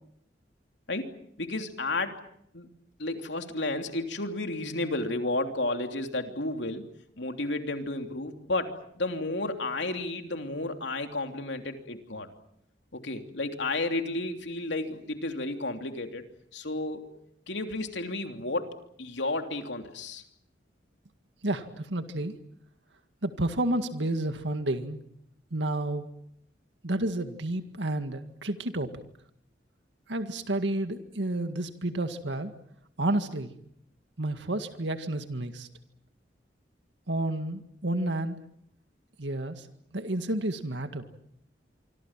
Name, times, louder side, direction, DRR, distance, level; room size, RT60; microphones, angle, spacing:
voice 1, 1.4-2.2 2.5-2.7 3.0-6.8 7.2-12.3 12.9-16.2 16.5-17.1 17.5-18.7 19.0-20.2, left 2 dB, 85° left, 5 dB, 3.1 m, -32 dB
voice 2, 21.4-22.3 23.2-25.0 25.5-26.1 26.8-28.9 30.1-32.5 33.0-33.5 34.2-35.7 37.1-38.4 39.2-39.7 39.9-41.1, right 1 dB, 85° right, 8 dB, 2.0 m, -30 dB
26.0 x 25.5 x 7.5 m, 0.72 s
head